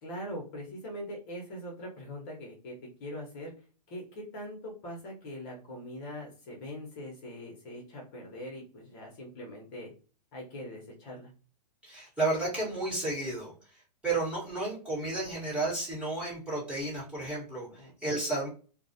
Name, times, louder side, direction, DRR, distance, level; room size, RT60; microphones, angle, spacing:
voice 1, 0.0-3.5 3.9-9.9 10.3-11.3 17.7-17.9, equal, 35° left, -1 dB, 0.8 m, -42 dB
voice 2, 11.8-18.5, right 2 dB, 5° right, -8 dB, 1.1 m, -32 dB
2.4 x 2.1 x 2.6 m, 0.37 s
hypercardioid pair, 140°, 21 cm